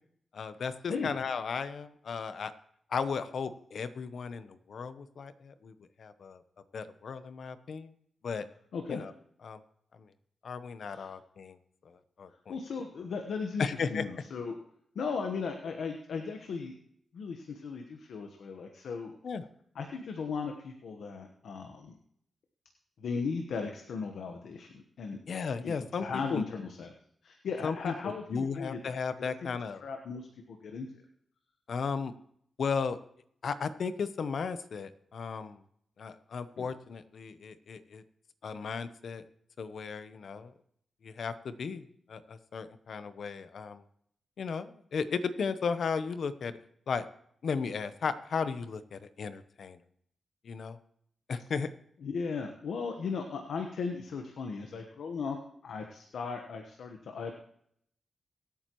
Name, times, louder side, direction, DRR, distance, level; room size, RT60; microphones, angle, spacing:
voice 1, 0.3-2.5 2.9-6.4 6.7-7.9 8.2-8.5 8.9-9.1 9.4-9.6 9.9-10.1 10.4-11.6 11.8-12.6 13.6-14.0 19.2-19.5 25.3-26.5 27.6-29.8 31.7-32.1 32.6-33.0 33.4-35.6 36.0-38.0 38.4-39.2 39.6-40.5 41.0-43.8 44.4-46.6 46.9-47.1 47.4-49.8 50.4-50.8 51.3-51.7, left 5 dB, 70° left, 12 dB, 0.8 m, -35 dB
voice 2, 8.7-9.0 10.9-11.1 12.5-14.6 14.9-16.7 17.1-19.1 19.7-22.0 23.0-25.2 25.6-26.9 27.2-29.3 29.8-30.9 36.6-36.7 52.0-55.4 55.6-57.3, left 5 dB, 85° left, 4 dB, 1.2 m, -37 dB
23.0 x 8.9 x 3.1 m, 0.68 s
cardioid pair, 80°, 0 cm